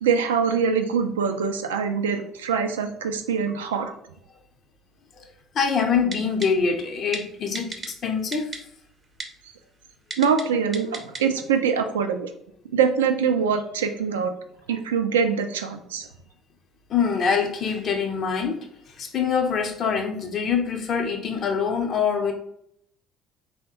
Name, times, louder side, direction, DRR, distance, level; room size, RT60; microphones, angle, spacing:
voice 1, 0.0-3.9 10.2-12.3 12.7-14.3 14.7-16.1, right 6 dB, 80° right, 7 dB, 0.3 m, -24 dB
voice 2, 5.5-8.5 16.9-18.7 19.0-22.3, left 6 dB, 50° left, 3 dB, 0.6 m, -24 dB
Typing, 6.1-6.5 7.1-7.2 7.5-7.9 8.3-8.6 9.2-9.3 10.1-10.4 10.7-11.2 11.6-11.7, right 3 dB, 30° right, 0.5 m, -33 dB
3.5 x 2.1 x 2.7 m, 0.72 s
figure-of-eight pair, 55°, 0 cm